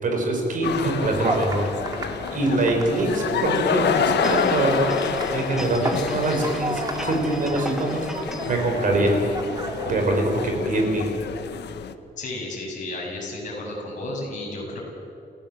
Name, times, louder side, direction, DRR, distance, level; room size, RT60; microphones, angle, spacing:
voice 1, 0.0-1.6 2.3-4.9 5.3-8.0 8.4-9.2 9.8-11.0, right 2 dB, 50° right, 2 dB, 5.2 m, -23 dB
sound 1, 0.6-11.9, left 8 dB, 90° left, 1.2 m, -29 dB
sound 2, 1.2-9.9, right 2 dB, 20° right, 2.3 m, -34 dB
sound 3, 4.2-8.6 9.0-9.1, equal, 5° right, 1.3 m, -37 dB
voice 2, 12.2-14.8, left 2 dB, 45° left, -2 dB, 7.5 m, -32 dB
29.5 x 15.5 x 7.7 m, 2.7 s
wide cardioid pair, 170°, 17 cm